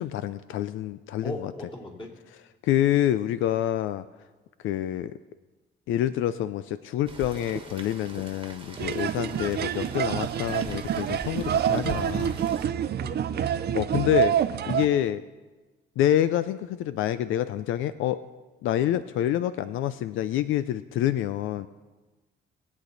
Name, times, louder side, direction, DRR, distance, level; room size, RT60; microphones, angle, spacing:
voice 1, 0.0-1.5 2.6-4.0 4.6-5.1 5.9-12.4 13.7-14.3 14.7-15.2 16.0-18.2 18.6-21.7, left 11 dB, 85° left, 13 dB, 0.5 m, -27 dB
voice 2, 1.2-2.1 9.2-9.5 13.0-13.5, left 1 dB, 25° left, -2 dB, 2.9 m, -39 dB
Rain, 7.1-12.7, right 3 dB, 25° right, 1.4 m, -43 dB
sound 1, 8.8-14.9, right 9 dB, 55° right, 0.6 m, -27 dB
20.5 x 8.4 x 4.0 m, 1.2 s
cardioid pair, 90°, 20 cm